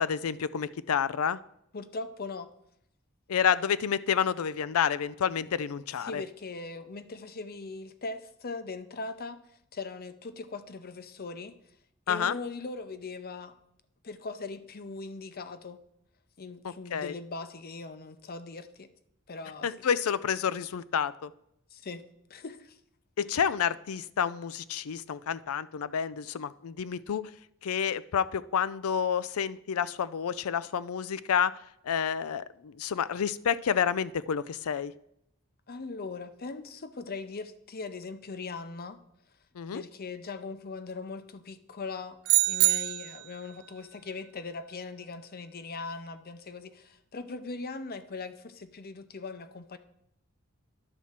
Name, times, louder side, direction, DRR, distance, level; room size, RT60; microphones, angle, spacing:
voice 1, 0.0-1.4 3.3-6.2 12.1-12.3 16.6-17.1 19.6-21.3 23.2-27.2 27.6-31.5 31.9-34.9 39.6-39.8, left 7 dB, 90° left, 17 dB, 0.4 m, -29 dB
voice 2, 1.7-2.5 6.0-9.4 9.7-11.5 12.1-13.6 14.0-15.8 16.4-18.9 19.3-19.7 21.7-22.0 22.3-22.8 35.7-39.0 39.7-42.2 42.4-49.8, left 3 dB, 45° left, 12 dB, 0.7 m, -40 dB
sound 1, 42.3-43.4, right 20 dB, 75° right, 0.4 m, -24 dB
11.0 x 4.3 x 7.3 m, 0.75 s
head